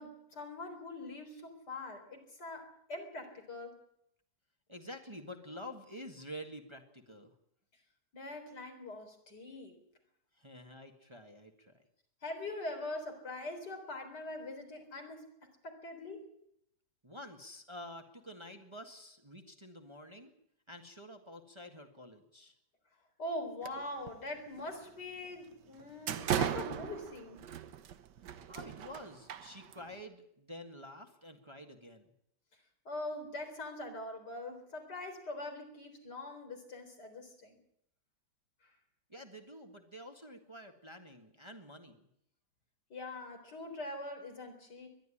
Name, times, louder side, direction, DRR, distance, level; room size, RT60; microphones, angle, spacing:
voice 1, 0.0-3.8 8.1-9.8 12.2-16.2 23.2-27.4 32.8-37.6 38.6-38.7 42.9-44.9, left 2 dB, 75° left, 4 dB, 4.5 m, -43 dB
voice 2, 4.7-7.3 10.3-11.8 17.0-20.3 20.7-22.6 28.5-32.1 39.1-42.0, equal, 15° right, 5 dB, 1.6 m, -49 dB
sound 1, 23.6-24.1 24.5-24.6 25.2-25.3 25.7-29.9, right 9 dB, 85° right, 1.6 m, -37 dB
21.5 x 12.0 x 10.0 m, 0.74 s
omnidirectional pair, 1.8 m